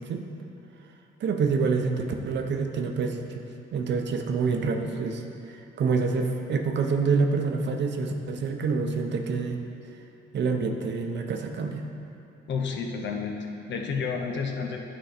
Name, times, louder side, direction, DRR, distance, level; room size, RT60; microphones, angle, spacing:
voice 1, 1.2-3.4 3.7-9.6 10.3-11.9, right 4 dB, 60° right, 4 dB, 0.7 m, -27 dB
voice 2, 12.5-14.8, left 5 dB, 65° left, 2 dB, 0.9 m, -30 dB
10.0 x 3.9 x 5.1 m, 2.8 s
cardioid pair, 90°, 20 cm